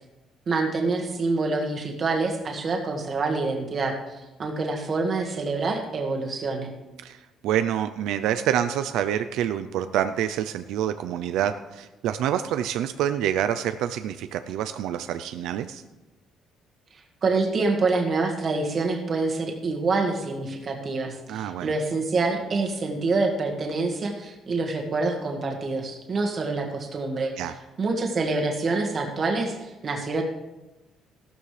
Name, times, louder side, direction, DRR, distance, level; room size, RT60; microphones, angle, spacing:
voice 1, 0.5-3.9 4.4-6.7 17.2-27.3 27.8-30.2, right 3 dB, 35° right, 2 dB, 1.8 m, -26 dB
voice 2, 7.0-15.8 21.3-21.7 27.4-27.5, right 10 dB, 85° right, 10 dB, 0.5 m, -27 dB
15.5 x 12.5 x 3.3 m, 1.1 s
cardioid pair, 160°, 0 cm